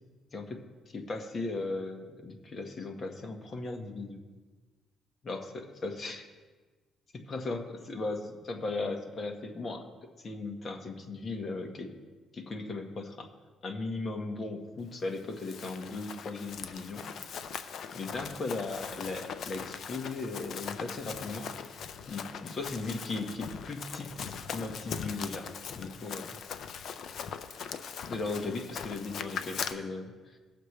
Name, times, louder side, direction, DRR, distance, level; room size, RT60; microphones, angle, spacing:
voice 1, 0.9-4.2 5.2-6.3 7.1-11.9 12.3-13.3 13.6-17.1 17.9-21.5 22.1-24.1 24.5-25.5 25.7-26.4 28.0-30.4, left 3 dB, 40° left, 4 dB, 1.5 m, -37 dB
Run, 15.2-29.7, left 7 dB, 65° left, 0.7 m, -40 dB
18.5 x 6.6 x 3.3 m, 1.3 s
cardioid pair, 90°, 0 cm